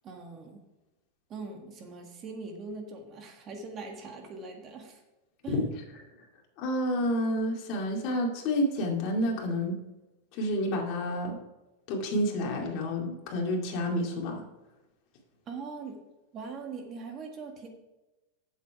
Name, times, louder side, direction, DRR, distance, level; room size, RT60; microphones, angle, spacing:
voice 1, 0.0-0.6 1.3-5.0 5.4-5.6 15.5-16.0 16.3-17.7, right 4 dB, 30° right, 3 dB, 1.8 m, -41 dB
voice 2, 6.6-9.7 10.3-11.4 11.9-14.4, left 1 dB, 45° left, 0 dB, 2.4 m, -29 dB
8.0 x 7.3 x 4.7 m, 1.0 s
supercardioid pair, 140°, 0 cm